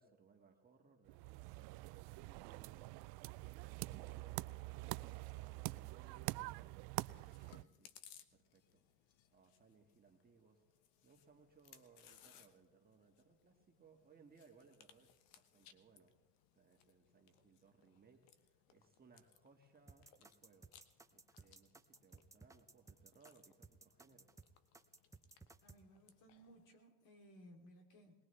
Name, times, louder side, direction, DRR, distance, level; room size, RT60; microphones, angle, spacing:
voice 1, 0.0-8.0 8.3-8.8 9.3-10.6 11.0-15.1 15.4-16.1 16.5-20.7 21.1-24.3, right 5 dB, 25° right, 2 dB, 1.7 m, -67 dB
sound 1, 1.1-7.6, right 22 dB, 75° right, 0.5 m, -46 dB
Chewing mastication, 7.1-26.7, left 9 dB, 80° left, 1.2 m, -67 dB
sound 2, 19.9-25.8, right 4 dB, 10° right, 0.6 m, -60 dB
voice 2, 25.6-28.1, equal, 60° left, 2 dB, 3.3 m, -61 dB
20.5 x 20.5 x 3.3 m, 1.2 s
cardioid pair, 115°, 36 cm